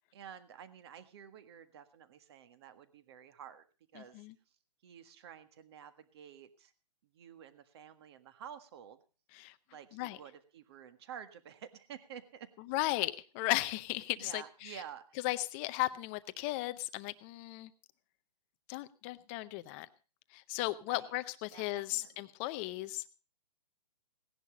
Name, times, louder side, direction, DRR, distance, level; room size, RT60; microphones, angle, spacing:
voice 1, 0.1-3.6 3.9-4.3 4.8-6.7 7.1-9.0 9.7-12.5 14.2-15.2 20.9-21.1 21.5-22.3, right 8 dB, 40° right, 11 dB, 1.6 m, -51 dB
voice 2, 4.0-4.3 9.3-9.5 9.9-10.2 12.7-14.7 15.2-17.7 18.7-19.9 20.3-23.0, left 18 dB, 20° left, 13 dB, 0.6 m, -36 dB
17.5 x 10.5 x 5.0 m, 0.36 s
hypercardioid pair, 160°, 20 cm